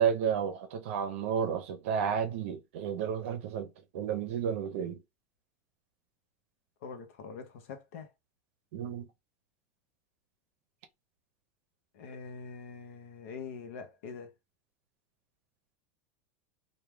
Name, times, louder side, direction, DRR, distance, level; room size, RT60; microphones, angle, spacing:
voice 1, 0.0-3.7 3.9-5.0 8.7-9.1, right 7 dB, 65° right, 0.6 m, -31 dB
voice 2, 6.8-8.1 11.9-14.3, left 5 dB, 65° left, 0.7 m, -44 dB
2.3 x 2.2 x 3.2 m
supercardioid pair, 170°, 7 cm